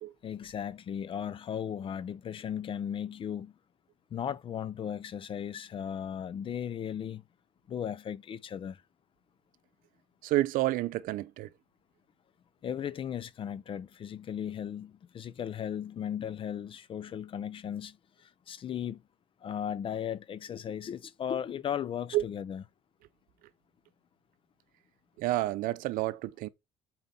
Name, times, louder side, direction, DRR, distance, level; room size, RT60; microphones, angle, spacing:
voice 1, 0.2-3.5 4.1-7.2 7.7-8.8 12.6-19.0 19.4-22.6, left 9 dB, 40° left, 0.5 m, -36 dB
voice 2, 10.2-11.5 22.1-22.3 25.2-26.5, right 16 dB, 75° right, 0.6 m, -29 dB
7.9 x 4.2 x 4.2 m
cardioid pair, 125°, 14 cm